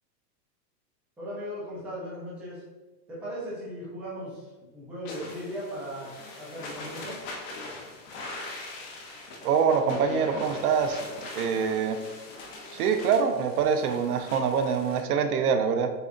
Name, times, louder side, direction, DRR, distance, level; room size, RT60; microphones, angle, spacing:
voice 1, 1.2-2.6 3.1-6.1 6.4-7.2, equal, 5° right, -8 dB, 0.4 m, -37 dB
sound 1, 5.0-15.0, left 2 dB, 30° left, 0.7 m, -41 dB
voice 2, 9.4-11.0 11.3-12.0 12.7-15.9, right 6 dB, 65° right, 8 dB, 0.6 m, -25 dB
6.7 x 2.5 x 2.5 m, 1.1 s
hypercardioid pair, 140°, 50 cm